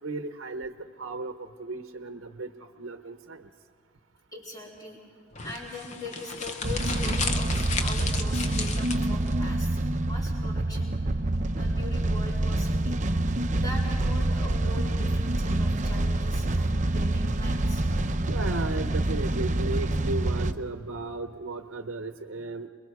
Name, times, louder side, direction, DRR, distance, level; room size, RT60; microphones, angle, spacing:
voice 1, 0.0-3.5 9.7-9.9 18.3-22.7, right 3 dB, 90° right, 8 dB, 0.8 m, -35 dB
voice 2, 4.3-5.0 5.4-11.2 11.5-13.0 13.5-17.8, left 2 dB, 20° left, -4 dB, 4.3 m, -41 dB
sound 1, 5.3-9.3, left 4 dB, 35° left, 0.9 m, -34 dB
sound 2, 6.6-20.5, right 1 dB, 40° right, 0.7 m, -26 dB
27.0 x 22.0 x 4.8 m, 2.3 s
head